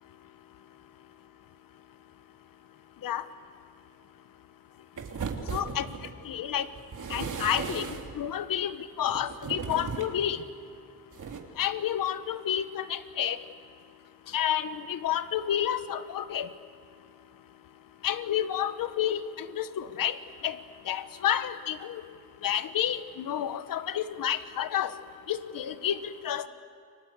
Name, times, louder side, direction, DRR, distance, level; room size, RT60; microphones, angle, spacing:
sound 1, 5.0-6.2 6.7-8.2 9.0-10.2 11.1-11.4, right 5 dB, 65° right, 3.0 m, -36 dB
voice 1, 5.5-5.9 6.2-6.7 7.1-10.4 11.6-13.4 14.3-16.5 18.0-20.6 20.8-22.0 22.4-24.9 25.3-26.5, left 10 dB, 80° left, 12 dB, 1.2 m, -30 dB
30.0 x 24.0 x 8.2 m, 2.5 s
cardioid pair, 105°, 33 cm